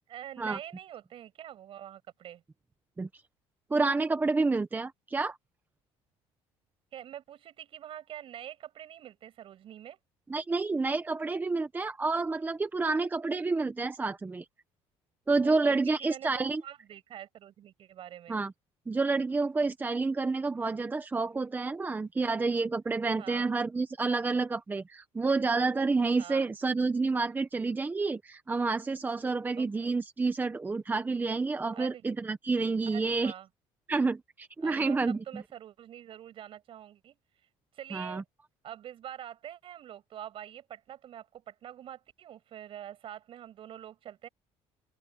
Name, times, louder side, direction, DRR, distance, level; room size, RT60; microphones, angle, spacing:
voice 1, 0.1-2.4 6.9-10.0 15.4-18.4 22.2-22.4 23.2-23.5 26.2-26.5 29.6-30.0 31.7-32.0 32.9-33.5 34.6-37.2 37.7-38.2 38.6-44.3, right 11 dB, 55° right, 7.0 m, -45 dB
voice 2, 3.7-5.4 10.3-14.4 15.3-16.6 18.3-18.5 18.9-33.3 33.9-35.4 37.9-38.2, right 3 dB, 15° right, 1.1 m, -29 dB
open air
cardioid pair, 130°, 11 cm